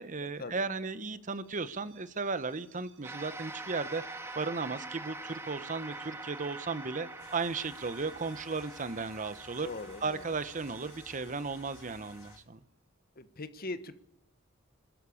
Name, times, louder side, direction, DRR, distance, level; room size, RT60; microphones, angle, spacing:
voice 1, 0.0-9.7 10.0-12.6, right 4 dB, 40° right, 14 dB, 1.0 m, -35 dB
sound 1, 1.2-12.9, right 9 dB, 65° right, 5.4 m, -64 dB
sound 2, 3.0-12.4, right 2 dB, 15° right, 1.7 m, -45 dB
sound 3, 7.2-12.4, left 3 dB, 90° left, 4.4 m, -57 dB
voice 2, 9.6-10.4 13.2-13.9, left 2 dB, 45° left, 12 dB, 1.3 m, -41 dB
29.5 x 13.5 x 7.2 m, 0.77 s
head